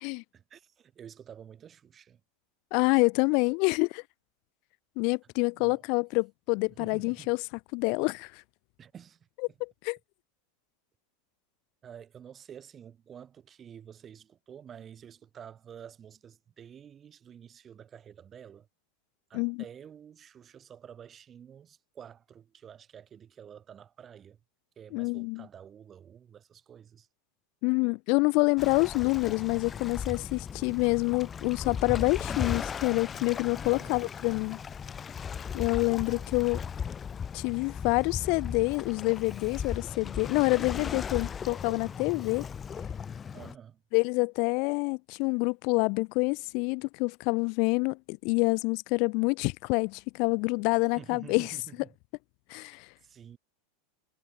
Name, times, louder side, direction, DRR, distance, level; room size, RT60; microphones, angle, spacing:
voice 1, 0.3-2.2 5.5-5.8 6.7-7.4 8.8-9.6 11.8-18.7 19.3-24.4 24.7-27.1 33.5-34.0 43.3-43.8 51.0-51.9 52.5-53.4, right 8 dB, 30° right, 1.7 m, -50 dB
voice 2, 2.7-4.0 5.0-7.4 7.7-8.4 9.6-10.0 19.3-19.6 24.9-25.4 27.6-34.6 35.5-36.6 37.3-42.5 43.9-51.5 52.5-52.9, left 33 dB, 60° left, 0.4 m, -27 dB
Waves surf, 28.6-43.5, left 7 dB, 25° left, 1.0 m, -37 dB
supercardioid pair, 120°, 0 cm